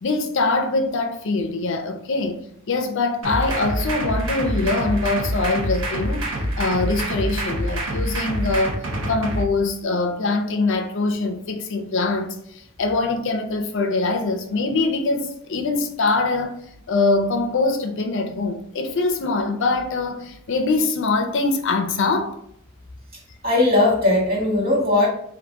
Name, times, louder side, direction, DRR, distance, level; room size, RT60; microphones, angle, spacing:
voice 1, 0.0-6.2 6.6-16.6 16.9-22.4, left 3 dB, 55° left, 0.5 m, -23 dB
sound 1, 3.2-9.4, right 1 dB, 65° right, 0.8 m, -26 dB
voice 2, 23.1-25.1, left 2 dB, 45° right, 1.4 m, -19 dB
3.9 x 2.5 x 3.5 m
head